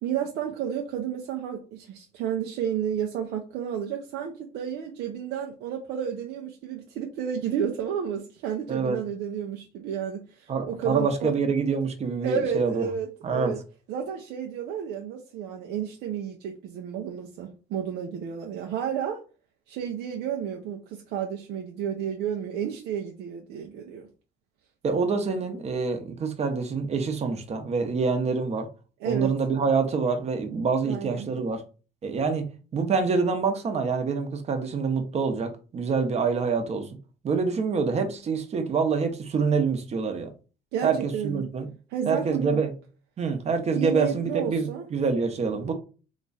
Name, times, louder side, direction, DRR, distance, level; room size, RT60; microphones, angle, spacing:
voice 1, 0.0-11.3 12.2-13.6 13.9-19.2 19.7-24.1 29.0-29.3 30.8-31.3 40.7-41.5 41.9-42.6 43.7-44.9, right 8 dB, 80° right, 0.6 m, -31 dB
voice 2, 8.7-9.0 10.5-12.8 13.2-13.5 24.8-28.7 29.1-31.6 32.0-32.4 32.7-36.9 37.2-40.3 40.8-41.7 42.1-42.7 43.2-45.7, right 5 dB, 40° right, 0.8 m, -26 dB
3.0 x 2.3 x 4.0 m
cardioid pair, 110°, 17 cm